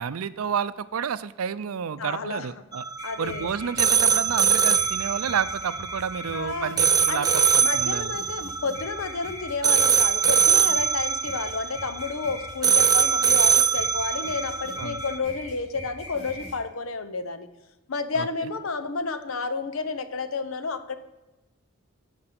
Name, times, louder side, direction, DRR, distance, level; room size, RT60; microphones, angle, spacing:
voice 1, 0.0-2.8 3.2-8.2 14.8-15.0 18.2-18.3, right 7 dB, 90° right, 15 dB, 0.5 m, -30 dB
voice 2, 2.0-2.5 3.0-3.5 6.3-6.8 7.1-17.5 17.9-21.0, left 4 dB, 75° left, 10 dB, 0.8 m, -31 dB
sound 1, 2.7-15.2, right 6 dB, 20° right, 0.4 m, -23 dB
sound 2, 2.9-16.5, left 1 dB, 35° left, 4.0 m, -41 dB
11.5 x 5.4 x 5.9 m, 1.0 s
head